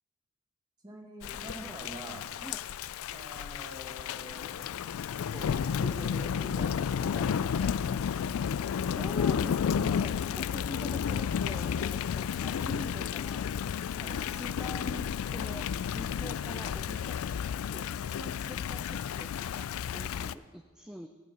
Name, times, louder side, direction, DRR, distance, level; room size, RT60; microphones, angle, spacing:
voice 1, 0.8-2.3 3.1-4.6 5.3-7.7 14.0-14.2, equal, 20° right, 1 dB, 1.8 m, -44 dB
Thunder / Rain, 1.2-20.3, left 7 dB, 70° left, 0.3 m, -32 dB
voice 2, 8.8-13.4 14.0-15.7 15.9-17.2 17.7-21.1, equal, 5° right, 6 dB, 0.4 m, -45 dB
11.5 x 9.6 x 6.0 m, 1.5 s
head